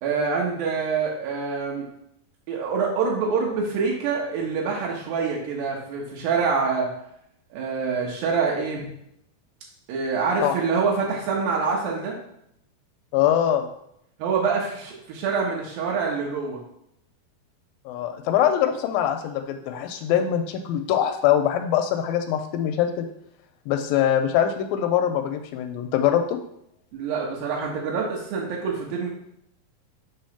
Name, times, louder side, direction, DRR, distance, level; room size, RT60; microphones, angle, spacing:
voice 1, 0.0-1.9 2.5-6.9 7.5-8.9 9.9-12.2 14.2-16.6 26.9-29.1, right 5 dB, 85° right, -3 dB, 2.9 m, -26 dB
voice 2, 13.1-13.7 17.9-23.1 23.7-26.4, left 10 dB, 85° left, 7 dB, 2.3 m, -23 dB
7.0 x 3.0 x 5.7 m, 0.75 s
omnidirectional pair, 4.1 m